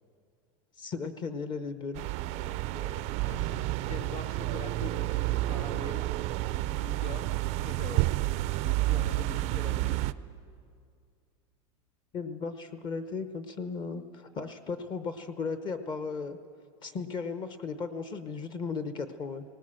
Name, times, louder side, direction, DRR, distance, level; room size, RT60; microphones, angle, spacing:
voice 1, 0.8-2.0 12.1-16.4 16.8-19.4, left 4 dB, 25° left, 10 dB, 0.9 m, -36 dB
sound 1, 2.0-10.1, right 17 dB, 45° right, 0.5 m, -30 dB
voice 2, 2.3-6.1 6.5-8.2 8.6-10.0, left 5 dB, 90° left, 4 dB, 2.3 m, -44 dB
18.5 x 18.0 x 7.7 m, 2.3 s
supercardioid pair, 150°, 16 cm